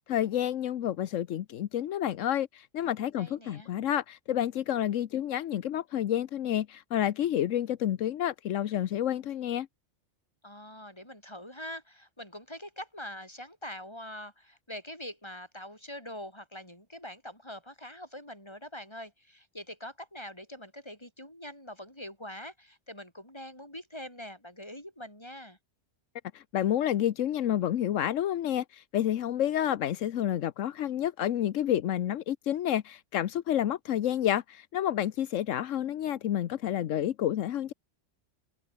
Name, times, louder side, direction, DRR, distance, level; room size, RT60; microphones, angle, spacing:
voice 1, 0.0-9.7 26.3-37.7, left 11 dB, 80° left, 1.1 m, -29 dB
voice 2, 3.2-3.7 10.4-25.6, left 1 dB, 20° left, 7.8 m, -44 dB
open air
omnidirectional pair, 1.3 m